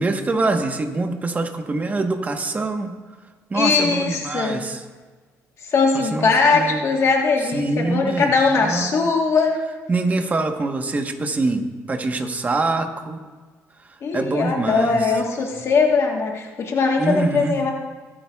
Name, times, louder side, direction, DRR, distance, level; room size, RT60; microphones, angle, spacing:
voice 1, 0.0-2.9 3.5-4.8 5.9-6.8 7.5-8.3 8.6-9.1 9.9-13.2 14.1-15.1 17.0-17.6, right 3 dB, 25° right, 5 dB, 1.1 m, -24 dB
voice 2, 3.5-4.6 5.7-9.6 14.0-17.7, left 4 dB, 50° left, 1 dB, 1.3 m, -20 dB
22.0 x 8.9 x 2.3 m, 1.4 s
cardioid pair, 105°, 6 cm